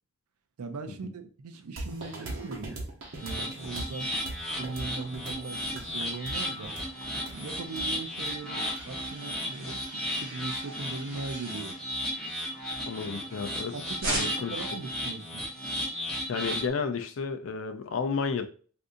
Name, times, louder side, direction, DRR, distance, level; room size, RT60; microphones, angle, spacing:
voice 1, 0.6-2.8 3.2-4.2 4.6-6.7 7.3-11.8 13.7-15.5, right 4 dB, 85° right, 0.5 m, -39 dB
sound 1, 1.8-9.3, right 2 dB, 60° right, 0.9 m, -41 dB
sound 2, 3.1-16.7, equal, 5° left, 0.9 m, -35 dB
sound 3, 6.6-13.6 14.0-14.7, right 1 dB, 40° right, 1.6 m, -41 dB
voice 2, 12.9-13.7 14.0-14.5 16.3-18.5, left 5 dB, 65° left, 0.4 m, -32 dB
3.7 x 2.6 x 2.6 m
head